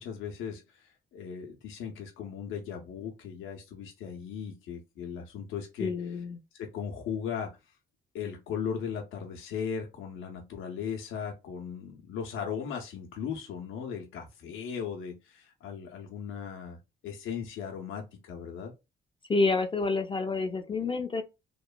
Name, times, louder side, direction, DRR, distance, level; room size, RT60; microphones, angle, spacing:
voice 1, 0.0-5.9 6.5-7.6 8.1-18.7, left 7 dB, 85° left, 0.6 m, -37 dB
voice 2, 5.8-6.4 19.3-21.2, left 3 dB, 25° left, 0.4 m, -28 dB
2.9 x 2.1 x 2.2 m
cardioid pair, 90°, 20 cm